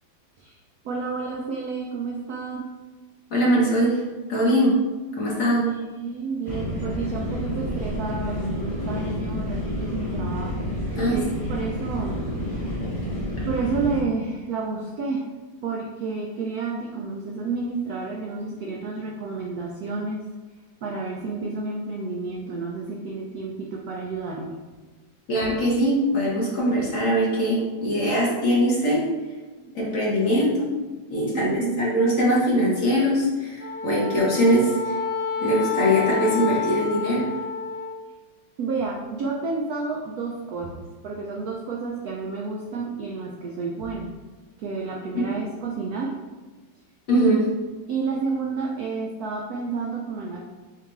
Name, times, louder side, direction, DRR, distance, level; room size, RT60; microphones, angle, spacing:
voice 1, 0.8-2.7 5.4-12.2 12.5-13.0 13.5-15.3 15.6-20.2 20.8-24.6 31.3-31.9 38.6-44.1 44.6-46.2 47.9-50.4, right 4 dB, 75° right, -1 dB, 0.8 m, -30 dB
voice 2, 3.3-4.0 4.3-4.7 5.2-5.6 10.9-11.2 25.3-29.0 29.7-30.7 31.1-34.9 35.4-37.2 45.1-45.3 47.1-47.5, equal, 50° left, -5 dB, 1.2 m, -21 dB
sound 1, 6.4-14.0, equal, 30° right, 0.6 m, -29 dB
Wind instrument woodwind instrument, 33.6-38.0, left 5 dB, 15° left, 0.9 m, -29 dB
6.8 x 2.5 x 3.1 m, 1.3 s
omnidirectional pair, 2.1 m